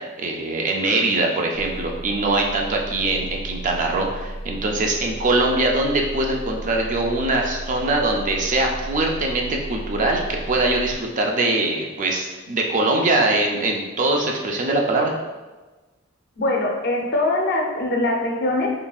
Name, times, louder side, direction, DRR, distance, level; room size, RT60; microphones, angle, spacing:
voice 1, 0.0-15.1, right 2 dB, 40° right, 1 dB, 0.4 m, -22 dB
sound 1, 1.5-11.0, right 1 dB, 75° right, 0.7 m, -34 dB
voice 2, 16.4-18.7, left 2 dB, 50° left, 1 dB, 0.5 m, -22 dB
3.8 x 3.4 x 2.3 m, 1.2 s
head